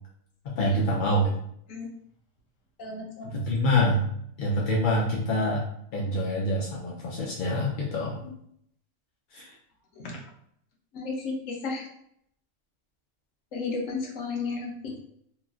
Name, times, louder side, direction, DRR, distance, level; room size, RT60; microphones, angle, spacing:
voice 1, 0.4-1.3 3.3-4.1 4.4-5.6 5.9-8.3 9.3-9.5, left 1 dB, 60° left, -4 dB, 0.5 m, -26 dB
voice 2, 2.8-3.3 10.0-10.2 10.9-11.9 13.5-14.9, left 4 dB, 80° left, 0 dB, 1.1 m, -33 dB
3.0 x 2.4 x 2.4 m, 0.70 s
omnidirectional pair, 1.3 m